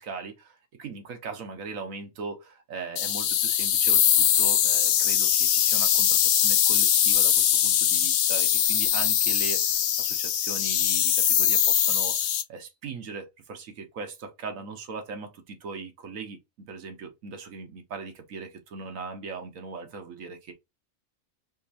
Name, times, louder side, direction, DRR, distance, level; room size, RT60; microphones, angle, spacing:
voice 1, 0.0-20.5, right 4 dB, 85° right, 1.4 m, -39 dB
sound 1, 3.0-12.4, left 10 dB, 65° left, 0.8 m, -22 dB
4.3 x 3.1 x 2.8 m
omnidirectional pair, 1.4 m